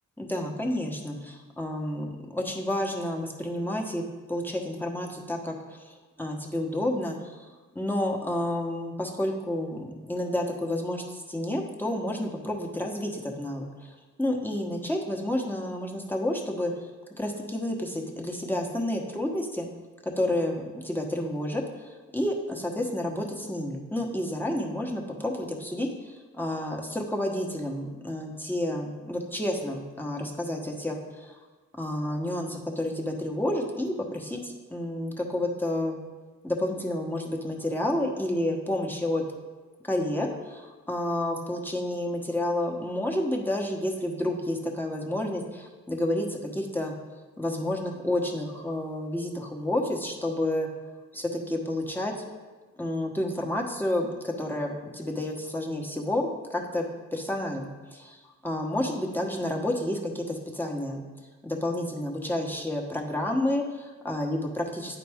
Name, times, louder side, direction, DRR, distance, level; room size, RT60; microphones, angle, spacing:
voice 1, 0.2-4.0 4.3-7.4 7.7-16.9 17.1-19.7 20.0-31.4 31.8-36.0 36.4-39.2 39.9-46.9 47.4-50.7 51.1-52.1 52.8-56.9 57.1-57.6 57.9-61.0 61.4-65.0, left 1 dB, 5° left, 0 dB, 1.1 m, -30 dB
9.5 x 4.2 x 3.5 m, 1.3 s
cardioid pair, 65°, 33 cm